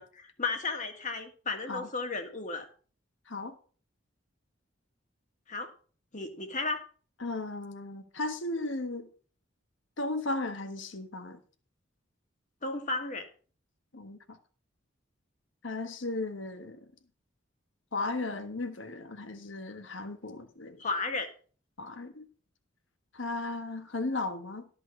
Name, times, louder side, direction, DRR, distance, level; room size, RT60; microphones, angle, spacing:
voice 1, 0.0-2.7 5.5-5.7 6.1-6.9 12.6-13.3 20.8-21.3, left 3 dB, 40° left, 1.8 m, -34 dB
voice 2, 7.2-9.1 10.0-11.4 13.9-14.4 15.6-16.8 17.9-20.8 21.8-22.2 23.1-24.7, left 2 dB, 70° left, 1.4 m, -35 dB
13.0 x 5.6 x 6.1 m
head